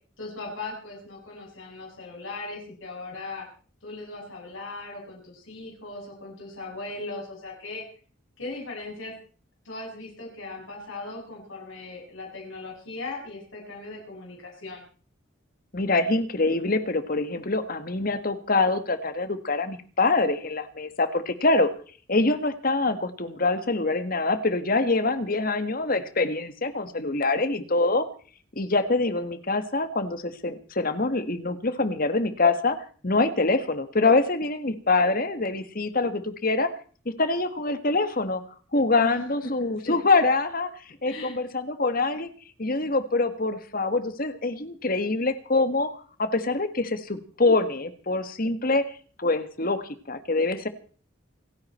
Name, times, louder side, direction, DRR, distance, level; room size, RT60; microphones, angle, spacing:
voice 1, 0.2-3.5 3.8-7.8 8.4-9.1 9.6-14.9 39.0-40.0 41.0-41.4, left 2 dB, 80° left, -1 dB, 7.7 m, -38 dB
voice 2, 15.7-21.7 22.1-28.1 28.6-36.7 37.1-38.4 38.7-40.7 41.0-42.3 42.6-45.9 46.2-48.9 49.2-50.7, left 3 dB, 45° left, 11 dB, 1.6 m, -25 dB
29.0 x 9.8 x 4.4 m, 0.42 s
head